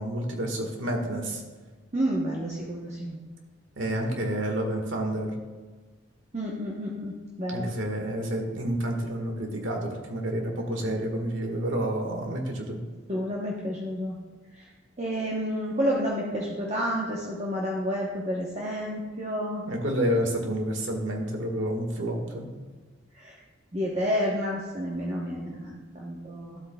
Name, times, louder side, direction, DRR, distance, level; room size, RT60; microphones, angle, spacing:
voice 1, 0.0-1.4 3.8-5.3 7.5-12.8 19.7-22.5, right 1 dB, 90° right, 2 dB, 1.6 m, -29 dB
voice 2, 1.9-3.2 6.3-7.1 7.4-7.7 13.1-14.2 14.6-14.7 15.0-19.6 23.1-23.4 23.7-26.6, equal, 35° right, -3 dB, 0.9 m, -30 dB
12.5 x 8.3 x 2.3 m, 1.4 s
head